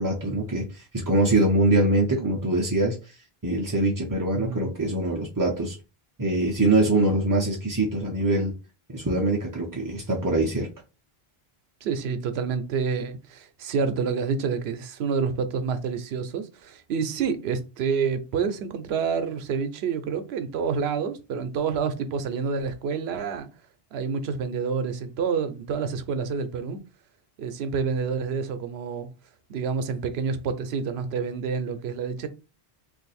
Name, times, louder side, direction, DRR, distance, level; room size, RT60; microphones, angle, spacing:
voice 1, 0.0-3.2 3.4-5.8 6.2-8.5 8.9-10.7, right 2 dB, 30° right, 0.4 m, -23 dB
voice 2, 4.3-4.7 11.8-23.5 23.9-26.8 27.4-29.1 29.5-32.3, right 5 dB, 85° right, 0.9 m, -28 dB
2.6 x 2.5 x 4.1 m
omnidirectional pair, 1.0 m